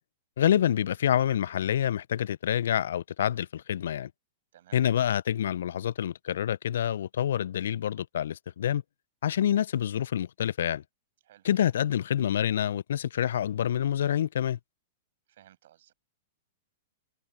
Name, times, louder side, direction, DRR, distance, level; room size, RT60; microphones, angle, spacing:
voice 1, 0.4-4.1 4.7-8.8 9.2-10.8 11.4-14.6, left 10 dB, 65° left, 0.9 m, -27 dB
voice 2, 15.3-15.9, right 12 dB, 60° right, 7.8 m, -57 dB
figure-of-eight pair, 105°, 0 cm